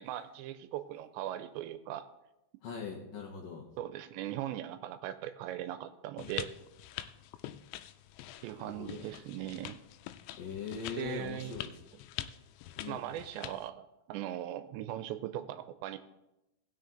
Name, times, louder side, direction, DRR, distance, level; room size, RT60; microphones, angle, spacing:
voice 1, 0.0-2.1 3.8-6.6 8.4-9.8 11.0-11.7 12.9-16.0, right 12 dB, 85° right, 11 dB, 2.7 m, -39 dB
voice 2, 2.6-3.7 8.5-9.1 10.4-11.7 12.8-13.0, left 6 dB, 70° left, -2 dB, 2.2 m, -41 dB
sound 1, 6.2-13.7, left 13 dB, 90° left, 2.9 m, -45 dB
18.0 x 6.5 x 3.8 m, 0.93 s
omnidirectional pair, 5.2 m